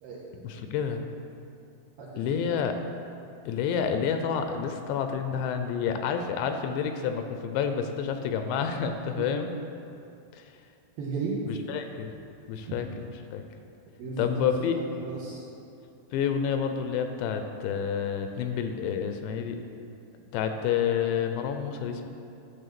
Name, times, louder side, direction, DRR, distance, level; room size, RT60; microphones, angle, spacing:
voice 1, 0.4-1.1 2.2-2.7 3.5-9.5 10.3-10.4 11.7-12.2 12.5-12.9 13.3-13.4 14.2-14.7 16.1-19.6 20.3-22.1, left 7 dB, 85° left, 6 dB, 2.7 m, -29 dB
voice 2, 2.0-2.4 9.1-9.3 11.0-11.4 12.7-12.8 14.0-15.4, right 4 dB, 70° right, -5 dB, 2.3 m, -35 dB
12.0 x 4.1 x 6.8 m, 2.6 s
omnidirectional pair, 5.2 m